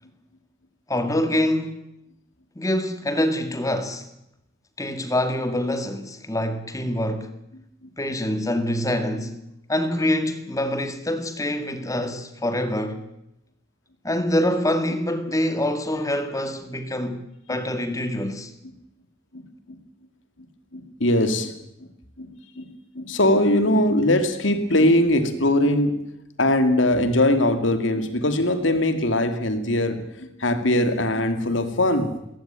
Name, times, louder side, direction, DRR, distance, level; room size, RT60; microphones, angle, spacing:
voice 1, 0.9-1.8 2.6-4.1 4.8-7.3 8.0-9.4 9.7-13.1 14.0-17.2 17.5-18.5, left 1 dB, 15° left, 2.1 m, -25 dB
voice 2, 19.3-19.8 20.7-21.5 22.2-26.0 26.4-32.2, left 1 dB, 70° left, 2.6 m, -21 dB
20.5 x 18.0 x 9.1 m
head